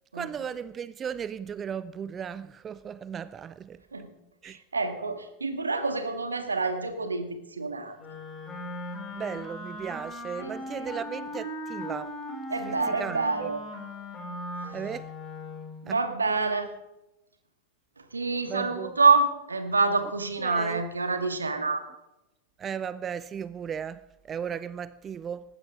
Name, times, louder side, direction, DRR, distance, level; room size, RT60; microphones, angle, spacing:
voice 1, 0.1-3.8 4.4-4.6 9.1-12.2 12.6-13.5 14.7-15.1 15.9-16.0 18.5-18.9 20.4-20.8 22.6-25.4, right 7 dB, 25° right, 0.4 m, -36 dB
voice 2, 4.4-8.0 10.4-10.9 12.5-13.6 15.8-16.7 18.1-21.9, right 4 dB, 75° right, 1.9 m, -27 dB
Wind instrument woodwind instrument, 8.0-15.8, left 1 dB, 20° left, 5.8 m, -38 dB
19.5 x 16.0 x 3.7 m
figure-of-eight pair, 90°, 0 cm